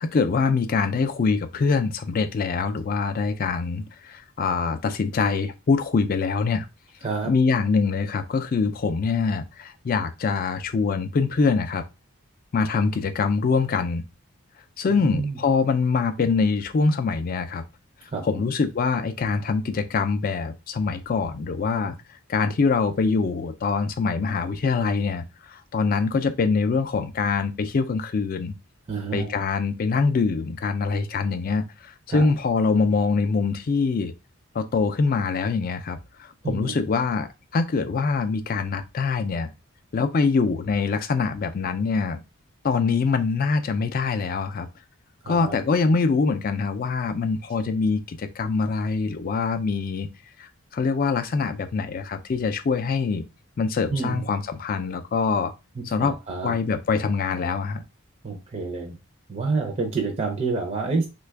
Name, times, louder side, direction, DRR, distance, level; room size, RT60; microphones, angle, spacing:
voice 1, 0.0-6.7 7.2-11.8 12.5-14.0 14.8-17.6 18.0-28.5 29.1-34.1 34.5-39.5 39.9-42.2 42.6-44.7 45.3-50.1 50.4-53.2 53.6-55.5 55.9-56.2 56.4-57.8, left 4 dB, 40° left, 0.3 m, -24 dB
voice 2, 14.9-15.4 18.1-18.5 28.9-29.4 32.1-32.3 36.4-36.8 45.2-45.6 53.9-54.3 56.0-56.5 58.2-58.9 59.3-61.1, right 4 dB, 30° right, 0.5 m, -28 dB
3.2 x 2.3 x 3.3 m
head